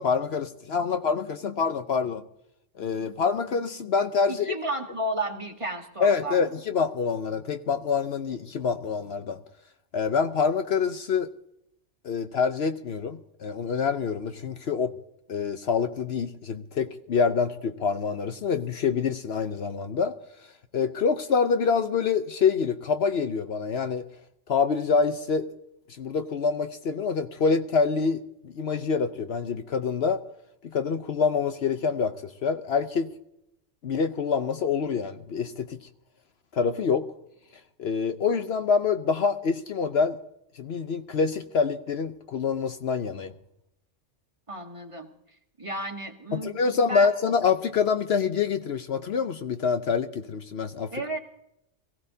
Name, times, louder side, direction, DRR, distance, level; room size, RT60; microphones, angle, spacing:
voice 1, 0.0-2.2 2.8-4.6 6.0-9.4 9.9-11.3 12.0-14.9 15.3-20.1 20.7-24.1 24.5-25.5 26.0-30.2 30.6-33.1 33.8-35.8 36.5-37.1 37.8-40.2 40.5-43.3 46.3-50.9, left 5 dB, 60° left, 8 dB, 0.9 m, -26 dB
voice 2, 4.3-6.5 44.5-45.1 45.6-46.6 46.9-47.1 50.9-51.2, right 1 dB, 25° right, 3 dB, 1.4 m, -32 dB
22.5 x 16.0 x 2.7 m, 0.82 s
omnidirectional pair, 1.3 m